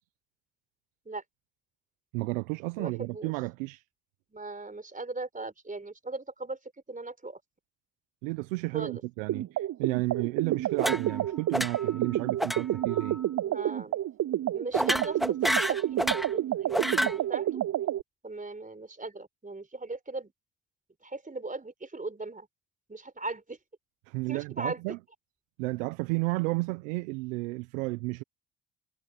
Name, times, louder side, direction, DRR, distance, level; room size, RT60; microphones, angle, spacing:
voice 1, 2.1-3.8 8.2-13.2 24.1-25.0 25.6-28.2, right 24 dB, 85° right, 1.2 m, -32 dB
voice 2, 2.8-3.3 4.3-6.6 6.9-7.4 8.7-9.0 13.4-14.0 14.5-17.6 18.2-20.3 21.0-22.5 22.9-23.6 24.3-24.8, right 3 dB, 20° right, 4.5 m, -39 dB
sound 1, 9.3-18.0, right 12 dB, 45° right, 0.6 m, -29 dB
sound 2, 10.8-11.2 11.5-11.9 12.4-12.6 12.9-13.2 14.7-16.3 16.7-17.2, equal, ahead, 2.1 m, -29 dB
hypercardioid pair, 55°, 39 cm